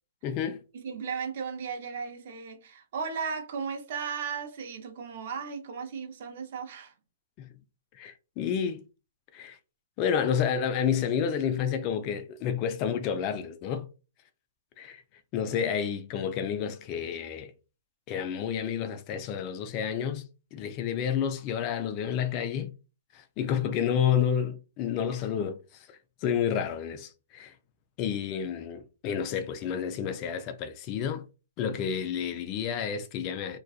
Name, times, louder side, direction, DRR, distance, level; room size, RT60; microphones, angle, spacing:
voice 1, 0.2-0.6 7.4-7.5 7.9-8.8 9.3-9.6 10.0-13.9 14.8-15.0 15.3-17.5 18.1-22.7 23.1-25.9 26.2-27.5 28.0-31.2 31.6-33.6, left 8 dB, 35° left, 0.3 m, -30 dB
voice 2, 0.7-6.9, right 6 dB, 55° right, 0.6 m, -36 dB
2.4 x 2.3 x 2.3 m
hypercardioid pair, 135°, 0 cm